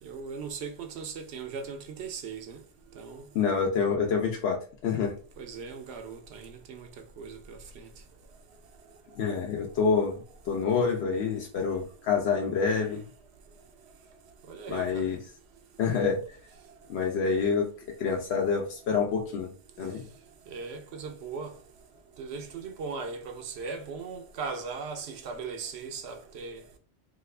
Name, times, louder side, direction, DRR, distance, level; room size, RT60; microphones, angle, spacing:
voice 1, 0.0-2.6 2.9-3.3 5.4-6.9 7.2-7.9 14.4-15.2 16.6-16.8 20.5-21.6 22.2-26.6, right 5 dB, 80° right, 0.8 m, -39 dB
voice 2, 3.3-4.6 4.8-5.1 9.2-10.1 10.5-13.0 14.7-15.2 15.8-16.2 16.9-17.7 18.0-19.5 19.8-20.0, left 5 dB, 80° left, 0.9 m, -27 dB
2.8 x 2.4 x 3.2 m
omnidirectional pair, 1.1 m